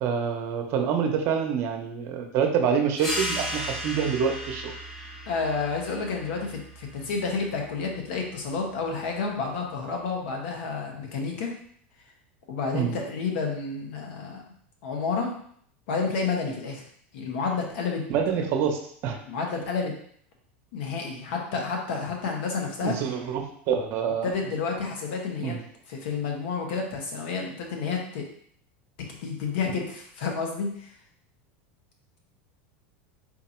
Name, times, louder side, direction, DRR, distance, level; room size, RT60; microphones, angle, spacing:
voice 1, 0.0-4.7 12.7-13.0 18.1-19.2 22.8-24.3 25.4-25.6, right 7 dB, 50° right, 4 dB, 0.9 m, -26 dB
sound 1, 3.0-8.1, equal, 5° left, 1.0 m, -36 dB
voice 2, 5.3-11.5 12.5-14.4 14.8-15.3 15.9-16.8 17.1-18.0 19.3-19.9 20.7-22.9 24.2-25.6 25.9-28.2 29.2-30.9, left 4 dB, 75° left, 1 dB, 1.3 m, -30 dB
4.3 x 2.8 x 4.4 m, 0.62 s
supercardioid pair, 130°, 6 cm